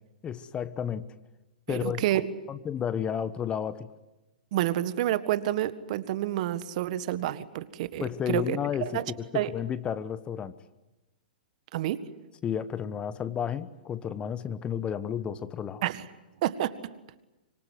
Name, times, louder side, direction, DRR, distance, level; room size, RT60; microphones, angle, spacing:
voice 1, 0.2-1.0 1.7-2.0 2.5-3.9 8.0-10.5 12.4-15.8, left 8 dB, 20° left, 14 dB, 1.1 m, -32 dB
voice 2, 1.7-2.3 4.5-8.6 8.9-9.0 9.3-9.5 11.7-12.0 15.8-16.1 16.4-16.8, right 13 dB, 50° right, 13 dB, 1.7 m, -29 dB
25.5 x 23.0 x 9.4 m, 1.0 s
hypercardioid pair, 115°, 5 cm